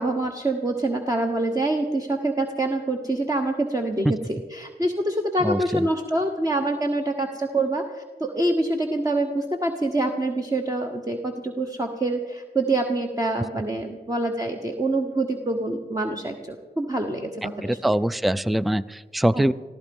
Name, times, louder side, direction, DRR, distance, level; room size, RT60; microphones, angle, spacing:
voice 1, 0.0-18.0 19.3-19.4, right 2 dB, 20° right, 4 dB, 1.2 m, -26 dB
voice 2, 17.6-19.5, right 1 dB, ahead, 19 dB, 0.4 m, -22 dB
15.0 x 14.5 x 5.4 m, 1.4 s
cardioid pair, 70°, 18 cm